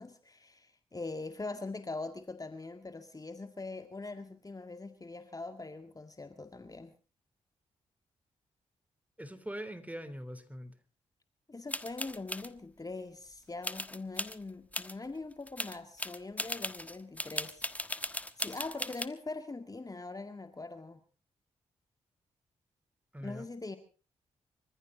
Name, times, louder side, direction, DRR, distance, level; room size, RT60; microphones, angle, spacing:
voice 1, 0.0-6.9 11.5-17.7 18.4-21.0 23.2-23.8, left 3 dB, 30° left, 2.0 m, -42 dB
voice 2, 9.2-10.7 23.1-23.5, equal, 10° right, 3.6 m, -42 dB
sound 1, 11.7-12.5 13.6-14.4 14.7-14.9 15.3-19.1, left 1 dB, 10° left, 1.4 m, -37 dB
25.5 x 14.5 x 3.9 m
supercardioid pair, 45°, 13 cm